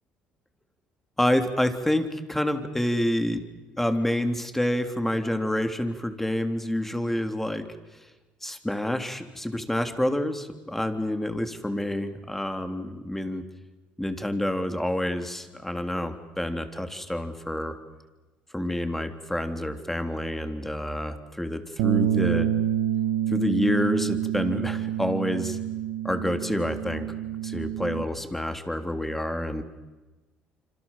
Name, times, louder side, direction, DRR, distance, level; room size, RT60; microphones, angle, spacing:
voice 1, 1.2-3.4 3.8-7.6 8.4-13.4 14.0-17.8 18.5-22.5 23.3-25.6 26.0-27.1 27.4-29.6, left 1 dB, 5° left, 7 dB, 3.4 m, -28 dB
Bass guitar, 21.8-28.0, right 11 dB, 85° right, 1.5 m, -27 dB
27.0 x 26.0 x 7.5 m, 1.2 s
supercardioid pair, 80°, 4 cm